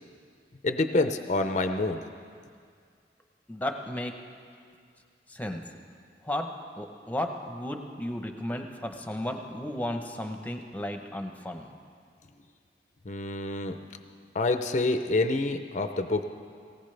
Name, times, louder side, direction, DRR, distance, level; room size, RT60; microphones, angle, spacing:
voice 1, 0.6-2.0 13.1-13.8 14.3-16.2, left 2 dB, 40° left, 8 dB, 0.6 m, -27 dB
voice 2, 3.5-4.2 5.3-5.6 6.2-11.7, left 1 dB, 10° left, 4 dB, 0.9 m, -34 dB
19.0 x 17.0 x 3.3 m, 2.2 s
head